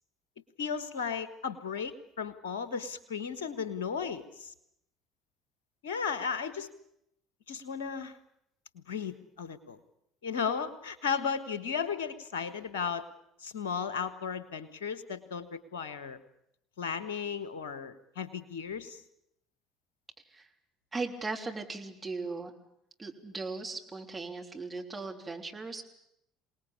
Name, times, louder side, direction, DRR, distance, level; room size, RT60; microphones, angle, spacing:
voice 1, 0.6-4.5 5.8-6.7 7.5-8.2 8.7-9.8 10.2-13.1 13.4-16.2 16.8-19.0, left 6 dB, 70° left, 13 dB, 1.5 m, -35 dB
voice 2, 20.9-22.5 23.0-25.8, right 3 dB, 20° right, 2 dB, 3.5 m, -38 dB
26.0 x 19.0 x 8.6 m, 0.79 s
figure-of-eight pair, 60°, 0 cm